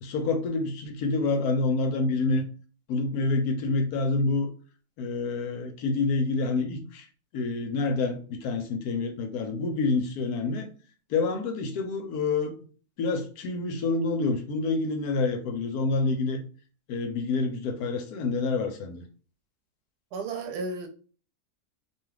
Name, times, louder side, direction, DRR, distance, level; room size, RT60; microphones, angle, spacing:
voice 1, 0.0-2.5 2.9-4.5 5.0-7.0 7.3-10.7 11.1-12.6 13.0-16.4 16.9-19.0, left 3 dB, 75° left, 1.1 m, -27 dB
voice 2, 20.1-20.9, right 3 dB, 85° right, 1.1 m, -33 dB
2.8 x 2.3 x 3.2 m
omnidirectional pair, 1.7 m